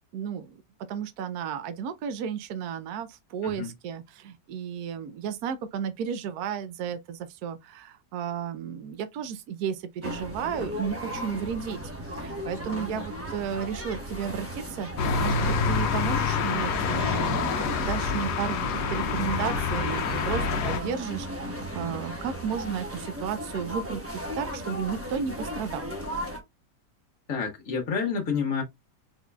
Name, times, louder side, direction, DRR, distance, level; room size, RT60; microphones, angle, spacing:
voice 1, 0.1-0.6 0.9-11.8 12.1-25.9, right 7 dB, 70° right, 1.1 m, -33 dB
sound 1, 10.0-26.4, equal, 10° right, 0.8 m, -36 dB
sound 2, 15.0-20.8, left 5 dB, 70° left, 1.2 m, -27 dB
voice 2, 27.3-28.6, left 6 dB, 50° left, 1.9 m, -29 dB
4.2 x 4.1 x 2.3 m
omnidirectional pair, 1.8 m